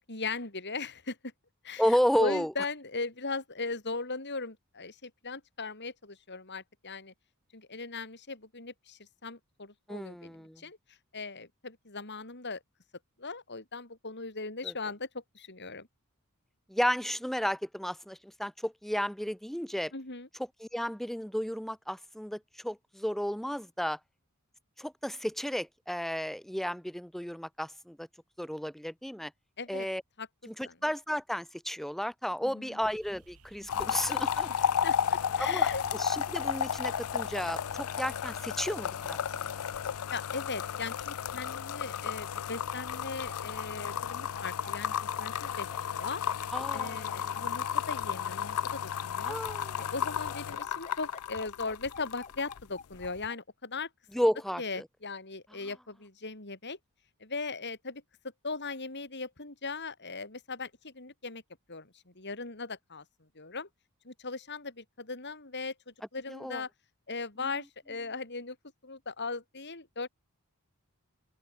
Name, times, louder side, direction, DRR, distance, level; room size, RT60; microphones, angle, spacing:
voice 1, 0.1-1.2 1.6-1.8 2.2-7.1 7.5-12.6 13.2-15.9 19.9-20.3 29.6-29.9 30.2-30.3 30.6-30.8 32.4-32.8 33.7-33.9 34.8-35.8 40.1-46.2 46.7-49.4 49.8-53.9 54.6-56.8 57.2-58.0 58.4-61.4 61.7-63.0 63.4-63.7 64.0-66.7 67.1-68.6 68.8-70.1, left 4 dB, 50° left, 5.5 m, -39 dB
voice 2, 1.8-2.5 9.9-10.6 14.6-14.7 16.7-19.9 20.6-24.0 24.8-28.1 28.4-29.3 29.7-30.0 30.5-34.7 35.4-39.5 46.5-47.3 49.3-49.8 54.1-54.8 66.3-66.6, equal, ahead, 0.5 m, -33 dB
sound 1, 32.8-40.0, right 2 dB, 85° right, 4.9 m, -58 dB
sound 2, 33.7-52.6 52.9-53.3, left 8 dB, 80° left, 0.5 m, -33 dB
sound 3, 42.7-53.4, left 5 dB, 35° left, 4.6 m, -49 dB
open air
head